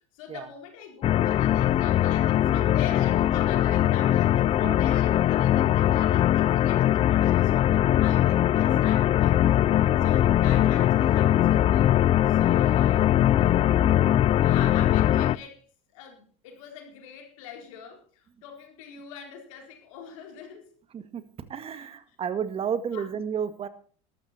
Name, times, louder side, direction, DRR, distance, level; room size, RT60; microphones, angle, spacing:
voice 1, 0.1-9.4 10.0-11.9 12.3-13.8 14.4-15.6 15.9-20.7 21.7-21.9 22.9-23.1, left 7 dB, 80° left, 2 dB, 4.4 m, -43 dB
sound 1, 1.0-15.4, left 12 dB, 35° left, 0.5 m, -21 dB
voice 2, 21.5-23.7, right 7 dB, 35° right, 11 dB, 1.8 m, -31 dB
13.5 x 13.0 x 4.4 m, 0.43 s
supercardioid pair, 105°, 17 cm